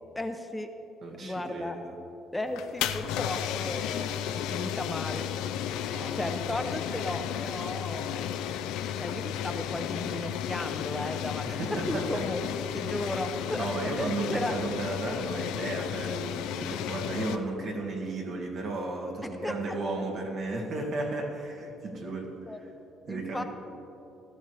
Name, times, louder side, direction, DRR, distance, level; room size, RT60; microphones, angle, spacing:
voice 1, 0.1-0.7 1.1-1.8 2.3-5.2 6.1-8.3 8.9-11.4 11.9-14.5 19.4-19.8 22.3-22.6 23.1-23.4, left 1 dB, 10° left, 5 dB, 0.7 m, -35 dB
voice 2, 1.0-2.0 5.8-6.3 11.4-12.3 13.6-22.7 23.1-23.4, right 2 dB, 60° right, 0 dB, 2.0 m, -34 dB
sound 1, 2.5-17.4, left 10 dB, 90° left, 0.5 m, -33 dB
16.0 x 13.5 x 3.4 m, 3.0 s
cardioid pair, 95°, 0 cm